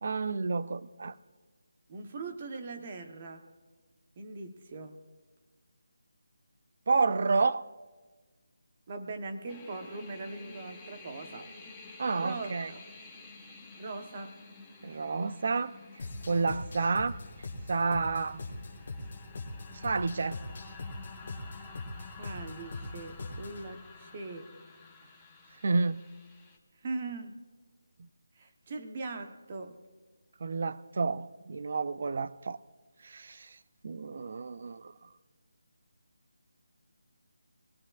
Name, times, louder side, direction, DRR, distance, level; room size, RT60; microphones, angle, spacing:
voice 1, 0.0-1.1 6.9-7.6 12.0-12.7 14.8-15.7 16.3-17.2 17.7-18.4 19.7-20.4 25.6-26.0 30.4-32.6 33.0-33.6 33.8-34.9, right 4 dB, 45° right, 0.4 m, -30 dB
voice 2, 1.9-3.5 4.2-5.0 8.9-11.5 12.2-12.8 13.8-14.4 22.2-24.5 26.8-27.4 28.4-29.8, right 3 dB, 30° right, 0.9 m, -41 dB
sound 1, 9.5-26.6, left 4 dB, 5° left, 0.9 m, -51 dB
sound 2, 16.0-23.7, left 2 dB, 40° left, 1.5 m, -42 dB
21.5 x 18.0 x 2.4 m
figure-of-eight pair, 170°, 0 cm